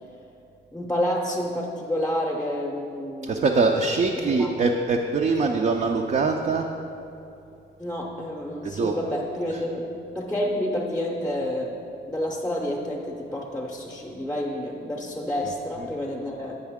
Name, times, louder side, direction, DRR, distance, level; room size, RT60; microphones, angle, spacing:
voice 1, 0.7-3.5 4.2-4.5 7.8-11.8 12.1-16.6, left 1 dB, 5° left, -2 dB, 0.7 m, -29 dB
voice 2, 3.2-6.6 8.6-9.0 9.5-9.6 15.8-15.9, right 4 dB, 40° right, 1 dB, 0.5 m, -23 dB
8.0 x 5.5 x 3.5 m, 2.8 s
cardioid pair, 90°, 20 cm